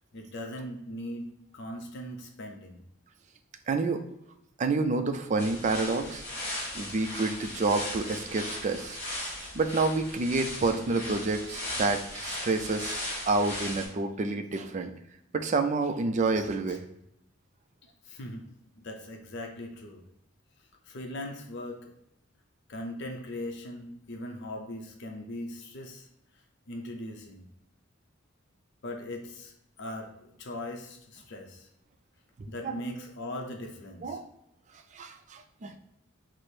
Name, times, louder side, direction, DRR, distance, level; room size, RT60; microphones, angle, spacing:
voice 1, 0.1-2.8 16.7-16.8 18.0-18.5 18.8-20.0 20.9-21.9 22.7-26.1 26.7-27.5 28.8-29.5 29.8-31.7 32.5-34.2, left 1 dB, 55° left, 2 dB, 0.6 m, -39 dB
voice 2, 3.7-4.0 4.6-6.2 6.7-13.0 13.3-14.9 15.3-16.8 32.6-32.8 34.0-34.2 34.9-35.7, right 3 dB, 35° right, 6 dB, 0.3 m, -29 dB
sound 1, 5.4-13.9, left 1 dB, 30° left, 1.3 m, -37 dB
4.8 x 2.0 x 4.4 m, 0.76 s
head